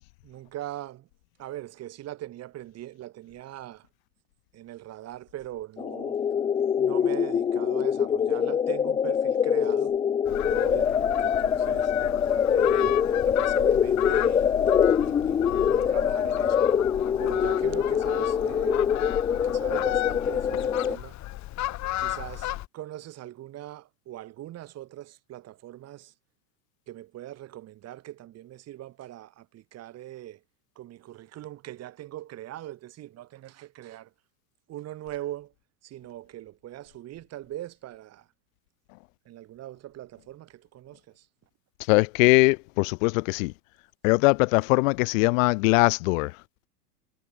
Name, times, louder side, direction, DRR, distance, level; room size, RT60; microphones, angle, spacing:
voice 1, 0.2-1.1 1.4-3.9 4.5-6.2 6.8-9.9 10.4-14.5 15.0-16.6 17.2-18.8 19.3-21.2 22.0-26.1 26.9-30.4 30.8-34.1 34.7-35.5 35.8-38.3 39.2-41.3, right 14 dB, 30° right, 2.7 m, -41 dB
sound 1, 5.8-21.0, left 8 dB, 10° left, 0.5 m, -24 dB
Fowl, 10.3-22.7, left 16 dB, 35° left, 2.9 m, -34 dB
voice 2, 41.9-43.5 44.0-46.3, left 26 dB, 55° left, 1.0 m, -21 dB
supercardioid pair, 140°, 48 cm